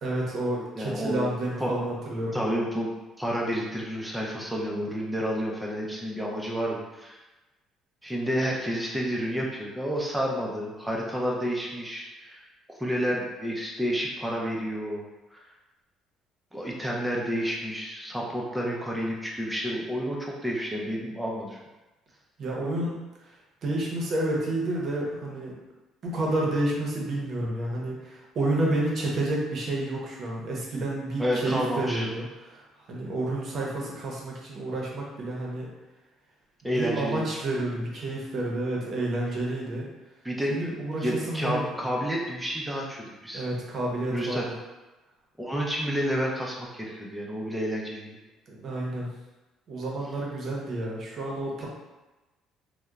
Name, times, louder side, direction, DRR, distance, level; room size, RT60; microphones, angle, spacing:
voice 1, 0.0-2.5 22.4-22.9 23.6-25.5 26.0-32.6 32.9-35.7 36.7-39.9 40.5-41.8 43.3-44.6 48.5-49.1 49.7-51.7, right 1 dB, 50° right, -3 dB, 0.7 m, -30 dB
voice 2, 0.8-1.3 1.6-1.7 2.3-2.9 3.2-7.2 8.0-12.4 12.8-15.0 15.3-15.4 16.5-21.6 31.2-32.1 36.6-37.2 40.2-43.5 44.1-44.5 45.4-48.2, equal, 5° right, -2 dB, 0.5 m, -30 dB
2.8 x 2.0 x 2.3 m, 1.1 s
cardioid pair, 115°, 0 cm